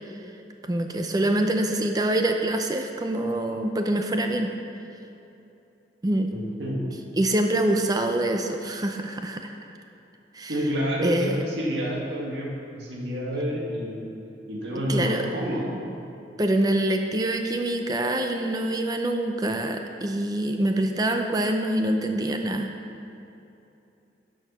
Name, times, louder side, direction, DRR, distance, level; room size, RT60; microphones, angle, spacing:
voice 1, 0.6-4.5 6.0-6.3 7.2-9.5 10.3-10.5 11.0-11.4 14.9-15.2 16.4-22.7, right 1 dB, 20° right, 4 dB, 0.5 m, -25 dB
voice 2, 6.3-6.8 10.5-14.1 14.5-15.8, equal, 75° right, -2 dB, 1.9 m, -29 dB
10.5 x 6.9 x 5.7 m, 2.8 s
head